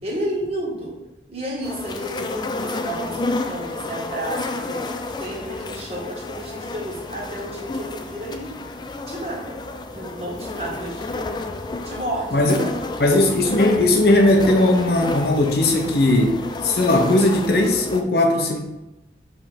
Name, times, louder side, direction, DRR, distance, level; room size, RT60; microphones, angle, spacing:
voice 1, 0.0-1.0 1.3-4.8 5.2-8.5 9.1-9.6 9.9-11.3 11.8-13.1, right 1 dB, 35° right, -4 dB, 1.6 m, -31 dB
sound 1, 1.6-18.0, left 2 dB, 25° left, 0.4 m, -31 dB
voice 2, 12.3-12.6 13.0-18.6, left 1 dB, 60° left, 2 dB, 0.8 m, -18 dB
5.3 x 3.6 x 5.1 m, 0.97 s
head